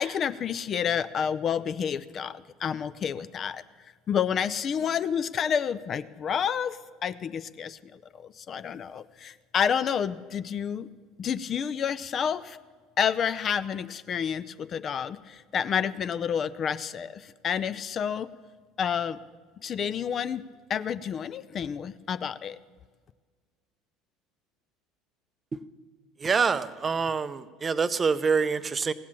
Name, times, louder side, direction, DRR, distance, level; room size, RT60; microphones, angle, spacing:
voice 1, 0.0-3.6 4.1-10.9 11.2-12.6 13.0-18.3 18.8-19.2 19.6-22.6, left 7 dB, 40° left, 16 dB, 0.4 m, -29 dB
voice 2, 26.2-28.9, right 5 dB, 25° right, 14 dB, 0.5 m, -26 dB
16.0 x 7.3 x 7.4 m, 1.5 s
figure-of-eight pair, 65°, 0 cm